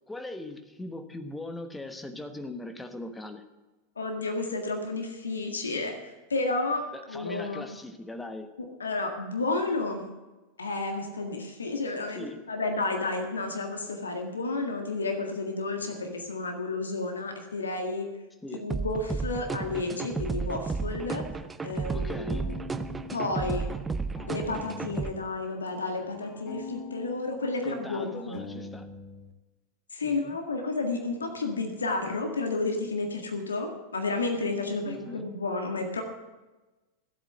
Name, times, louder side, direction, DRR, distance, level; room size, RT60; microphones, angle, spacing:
voice 1, 0.1-3.4 6.9-8.5 12.1-12.4 18.4-18.7 21.9-22.5 27.6-28.9 30.0-30.4 34.9-35.3, left 2 dB, 10° left, 7 dB, 1.2 m, -40 dB
voice 2, 4.0-5.9 6.3-6.8 7.1-7.7 8.8-10.1 10.6-18.1 18.5-21.2 21.6-22.5 23.1-23.7 24.3-28.4 29.9-36.0, left 3 dB, 75° left, 4 dB, 1.8 m, -31 dB
sound 1, 18.7-25.1, right 4 dB, 15° right, 0.6 m, -33 dB
sound 2, 21.3-25.2 25.5-29.3, left 4 dB, 40° left, 1.4 m, -44 dB
14.5 x 8.2 x 7.6 m, 1.2 s
figure-of-eight pair, 90°, 0 cm